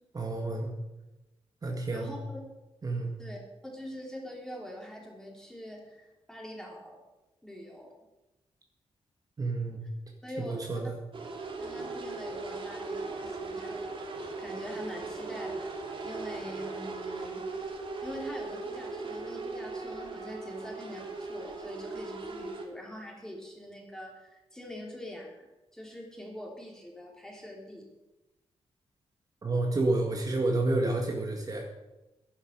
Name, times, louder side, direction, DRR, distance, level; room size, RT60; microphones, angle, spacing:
voice 1, 0.2-0.7 1.6-2.2 2.8-3.1 9.4-9.8 10.4-11.0 29.4-31.7, right 2 dB, 35° right, 1 dB, 1.7 m, -29 dB
voice 2, 1.9-2.4 3.2-7.0 7.4-7.9 10.2-10.8 11.6-14.0 14.4-15.7 16.0-17.4 18.0-25.5 25.7-27.8, equal, 5° left, -1 dB, 3.5 m, -44 dB
sound 1, 11.1-22.7, right 3 dB, 55° right, 2.4 m, -38 dB
11.0 x 10.5 x 6.7 m, 1.0 s
wide cardioid pair, 125°, 11 cm